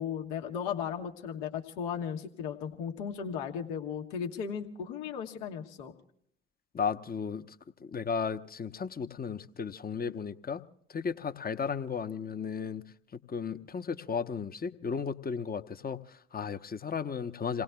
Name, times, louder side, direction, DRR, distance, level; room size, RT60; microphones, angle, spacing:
voice 1, 0.0-5.9, left 7 dB, 70° left, 2 dB, 1.4 m, -36 dB
voice 2, 6.7-7.6 7.8-10.6 10.9-12.8 13.3-17.6, left 6 dB, 25° left, 9 dB, 1.0 m, -34 dB
28.0 x 18.5 x 2.3 m, 0.70 s
figure-of-eight pair, 45°, 33 cm